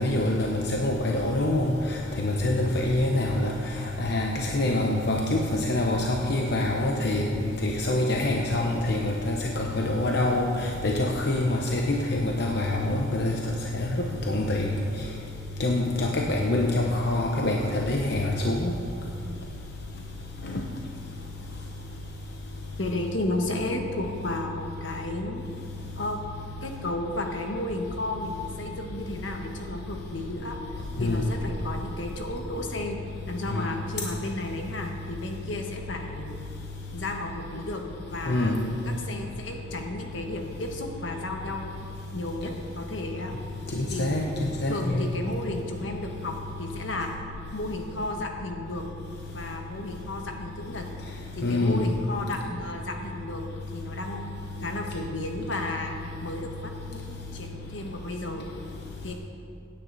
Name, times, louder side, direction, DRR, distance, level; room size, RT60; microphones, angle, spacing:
voice 1, 0.0-1.7 2.2-3.5 4.0-7.3 7.6-13.4 13.7-14.7 15.6-18.7 31.0-31.2 33.5-33.6 38.3-38.7 43.7-45.0 51.4-51.8, left 2 dB, 60° left, 1 dB, 0.9 m, -25 dB
voice 2, 22.8-25.4 26.0-26.2 26.6-30.6 31.0-33.0 33.3-36.4 36.9-37.8 38.1-38.6 39.0-41.9 42.1-43.3 43.9-44.3 44.7-47.1 47.5-48.8 49.3-50.8 51.3-53.4 53.7-55.9 56.2-58.5 59.0-59.1, left 2 dB, 80° left, 3 dB, 1.4 m, -33 dB
16.5 x 9.7 x 4.1 m, 2.6 s
head